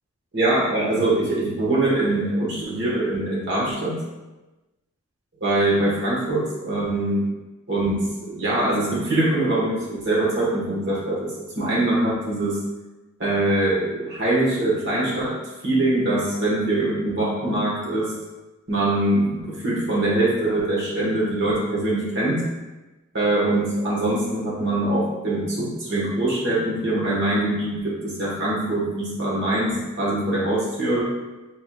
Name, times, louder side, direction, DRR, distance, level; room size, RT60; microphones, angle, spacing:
voice 1, 0.3-4.0 5.4-7.2 7.7-12.6 13.2-15.3 15.6-18.1 18.7-22.5 23.1-31.1, right 2 dB, 50° right, -6 dB, 1.4 m, -23 dB
4.5 x 3.7 x 2.3 m, 1.1 s
head